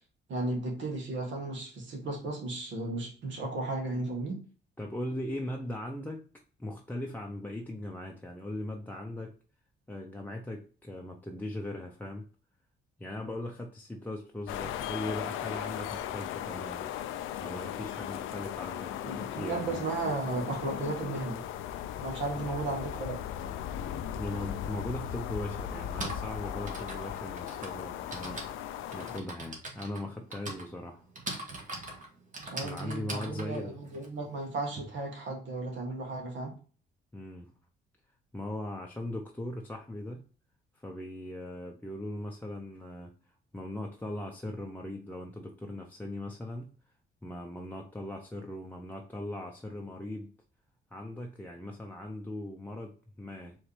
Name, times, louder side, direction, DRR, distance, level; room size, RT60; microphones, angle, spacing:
voice 1, 0.3-4.4 19.1-21.4 22.0-23.2 32.5-36.5, right 2 dB, 70° right, 1.7 m, -34 dB
voice 2, 4.8-6.3 6.6-9.3 9.9-12.3 13.0-16.9 17.4-19.8 22.3-22.5 24.2-31.1 32.6-33.8 37.1-37.5 38.3-40.3 40.7-43.1 43.5-46.7 47.2-50.3 50.9-53.6, left 1 dB, 10° left, 0.6 m, -39 dB
sound 1, 14.5-29.2, left 10 dB, 90° left, 0.4 m, -37 dB
Typing, 24.6-24.7 25.7-34.8, right 2 dB, 40° right, 1.5 m, -42 dB
4.7 x 3.1 x 3.3 m
cardioid pair, 90°, 20 cm